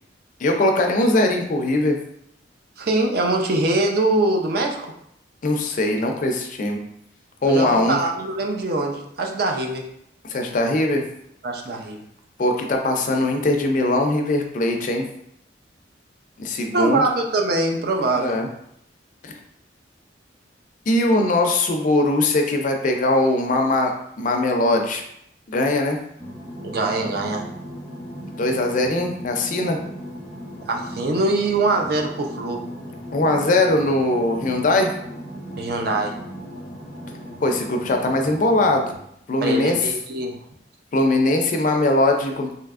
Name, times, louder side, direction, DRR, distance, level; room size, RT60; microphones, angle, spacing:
voice 1, 0.4-2.0 5.4-6.8 7.4-8.0 10.2-11.0 12.4-15.1 16.4-17.0 18.1-18.5 19.2-19.3 20.9-25.0 25.5-26.0 28.4-29.8 33.1-34.9 37.4-38.9 39.3-39.8 40.9-42.5, left 2 dB, 45° left, 3 dB, 0.4 m, -20 dB
voice 2, 2.8-4.9 7.4-9.9 11.4-12.0 16.7-18.4 26.6-27.5 30.7-32.6 35.6-36.1 39.4-40.4, right 2 dB, 55° right, 2 dB, 0.4 m, -23 dB
sound 1, 26.2-39.0, equal, 5° right, 0.6 m, -37 dB
3.3 x 2.7 x 2.4 m, 0.73 s
head